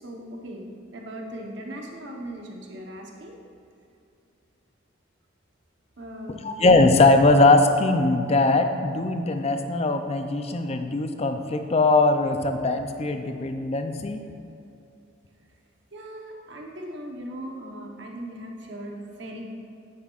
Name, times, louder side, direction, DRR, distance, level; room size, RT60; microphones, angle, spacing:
voice 1, 0.0-3.4 6.0-6.5 15.9-19.5, right 1 dB, 60° right, 0 dB, 1.0 m, -38 dB
voice 2, 6.4-14.2, left 2 dB, 30° left, 7 dB, 0.4 m, -20 dB
9.4 x 7.7 x 2.4 m, 2.6 s
head